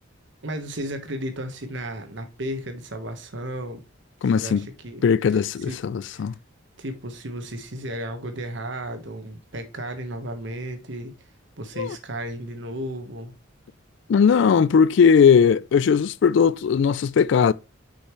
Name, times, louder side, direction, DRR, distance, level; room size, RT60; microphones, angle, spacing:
voice 1, 0.4-3.8 4.3-5.0 5.7-5.8 6.1-6.3 6.8-11.1 11.6-13.3, right 1 dB, 65° right, 1.3 m, -34 dB
voice 2, 4.2-4.7 5.0-6.3 11.8-11.9 14.1-17.5, left 6 dB, 60° left, 0.3 m, -18 dB
6.4 x 5.6 x 3.1 m
head